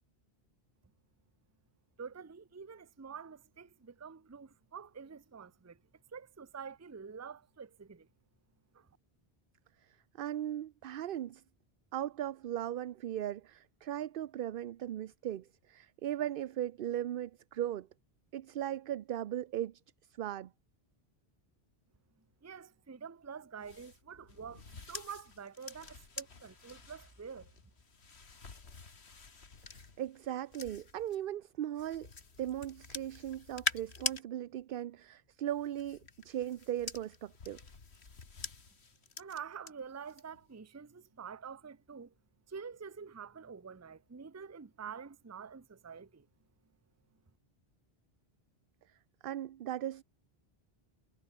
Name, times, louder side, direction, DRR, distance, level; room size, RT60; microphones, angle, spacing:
voice 1, 2.0-5.8 6.1-8.1 8.7-8.9 22.4-24.6 24.9-27.5 39.2-42.1 42.5-46.2, right 6 dB, 20° right, 0.6 m, -47 dB
voice 2, 10.2-11.4 11.9-17.9 18.3-19.8 20.2-20.5 29.7-32.1 32.4-37.6 49.2-50.0, right 11 dB, 65° right, 0.7 m, -38 dB
sound 1, 23.6-31.2 31.8-34.2 35.5-39.7 40.1-40.4, left 4 dB, 80° left, 2.3 m, -44 dB
omnidirectional pair, 1.1 m